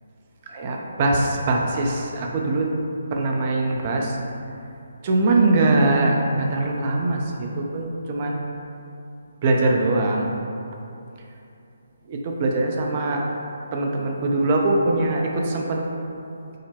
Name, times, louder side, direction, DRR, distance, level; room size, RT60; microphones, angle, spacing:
voice 1, 0.5-2.7 3.1-4.2 5.0-8.4 9.4-10.3 12.1-13.2 13.7-15.8, right 2 dB, 35° right, 0 dB, 0.5 m, -22 dB
5.5 x 2.1 x 3.4 m, 2.7 s
figure-of-eight pair, 140°, 0 cm